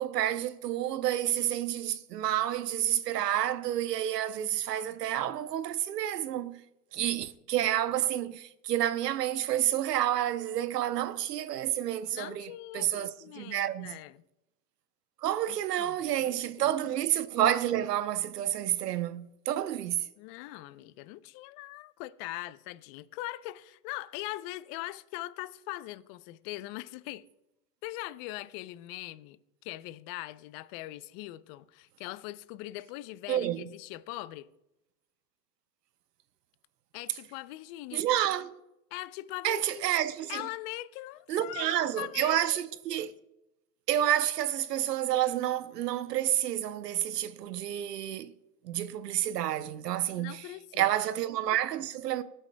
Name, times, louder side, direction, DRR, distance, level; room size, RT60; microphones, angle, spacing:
voice 1, 0.0-6.6 6.9-14.0 15.2-20.1 33.3-33.7 37.9-38.6 39.4-40.4 41.3-43.1 43.9-48.3 48.6-50.5 50.7-52.2, right 12 dB, 90° right, 0.8 m, -29 dB
voice 2, 12.1-14.2 15.5-16.7 20.2-27.3 27.8-29.4 29.6-34.5 36.9-38.0 38.9-39.9 40.3-41.7 42.0-42.6 50.2-50.9, left 17 dB, 40° left, 0.5 m, -41 dB
22.0 x 8.9 x 2.2 m
hypercardioid pair, 120°, 47 cm